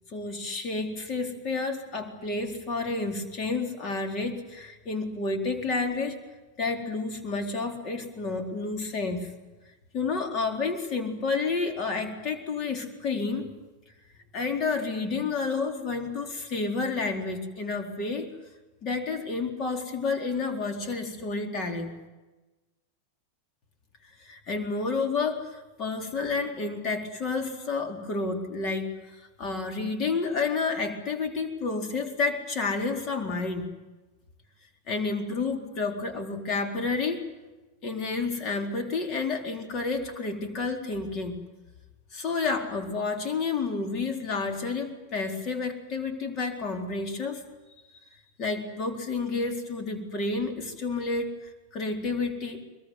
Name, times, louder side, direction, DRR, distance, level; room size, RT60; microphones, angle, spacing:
voice 1, 0.1-6.2 6.6-9.3 9.9-13.5 14.3-18.3 18.8-22.0 24.2-33.7 34.9-37.2 37.8-41.4 42.1-47.4 48.4-52.6, left 4 dB, 35° left, 4 dB, 4.1 m, -30 dB
24.0 x 22.5 x 9.6 m, 1.1 s
figure-of-eight pair, 90°, 0 cm